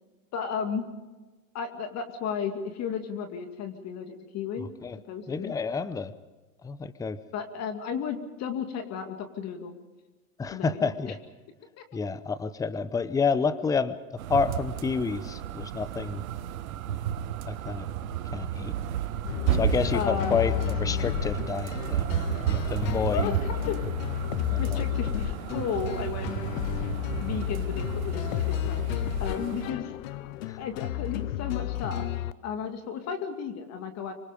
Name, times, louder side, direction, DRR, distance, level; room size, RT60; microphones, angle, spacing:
voice 1, 0.3-0.9 1.5-4.7 5.1-5.5 7.3-9.7 10.5-11.1 11.8-11.9 19.9-20.5 23.1-23.8 24.6-26.4 27.2-29.9 30.6-32.1 32.4-34.1, left 7 dB, 35° left, 6 dB, 2.5 m, -34 dB
voice 2, 5.3-6.1 6.6-7.2 10.4-11.2 11.9-13.9 14.3-16.2 17.5-17.9 18.3-18.7 19.5-22.1 22.4-23.3 24.5-24.8, left 5 dB, 10° left, 15 dB, 0.7 m, -29 dB
sound 1, 14.2-29.7, right 10 dB, 70° right, 1.4 m, -32 dB
sound 2, 19.2-32.3, left 13 dB, 65° left, 0.9 m, -32 dB
27.0 x 24.5 x 5.2 m, 1.2 s
hypercardioid pair, 110°, 43 cm